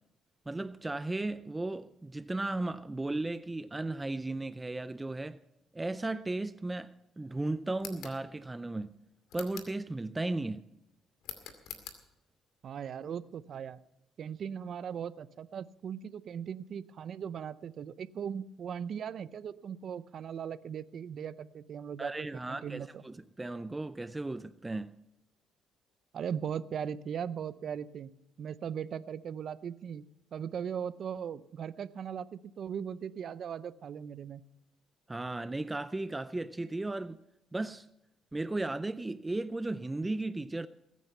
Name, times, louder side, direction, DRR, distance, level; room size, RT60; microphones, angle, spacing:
voice 1, 0.5-5.4 5.7-8.9 9.3-10.7 22.0-24.9 35.1-37.2 37.5-37.9 38.3-40.7, right 2 dB, 15° right, 0.4 m, -35 dB
sound 1, 7.7-8.2 9.3-9.8 11.2-12.0, left 8 dB, 85° left, 2.3 m, -45 dB
voice 2, 12.6-13.8 14.2-23.0 26.1-28.1 28.4-30.0 30.3-34.4, right 8 dB, 55° right, 0.7 m, -39 dB
21.0 x 9.3 x 5.6 m
cardioid pair, 95°, 0 cm